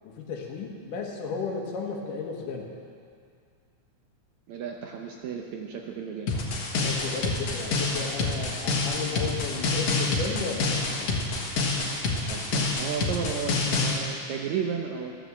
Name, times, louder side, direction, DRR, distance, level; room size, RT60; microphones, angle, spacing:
voice 1, 0.0-2.7 6.8-11.2, left 5 dB, 80° left, 1 dB, 3.1 m, -34 dB
voice 2, 4.5-6.3 12.3-15.1, right 7 dB, 70° right, 1 dB, 2.0 m, -33 dB
sound 1, 6.3-14.0, left 3 dB, 65° left, 2.7 m, -27 dB
13.5 x 10.0 x 7.2 m, 2.3 s
omnidirectional pair, 3.7 m